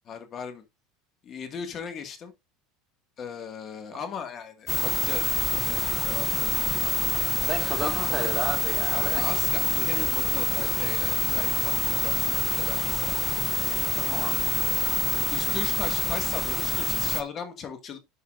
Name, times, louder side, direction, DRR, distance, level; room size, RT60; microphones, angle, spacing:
voice 1, 0.1-0.6 1.2-2.3 3.2-6.5 7.6-7.9 8.9-13.2 15.3-18.0, left 6 dB, 35° left, 2.1 m, -37 dB
sound 1, 4.7-17.2, left 3 dB, 10° left, 0.7 m, -26 dB
voice 2, 6.8-9.2 14.0-14.5, right 4 dB, 20° right, 2.8 m, -33 dB
11.5 x 5.5 x 2.6 m
supercardioid pair, 140°, 0 cm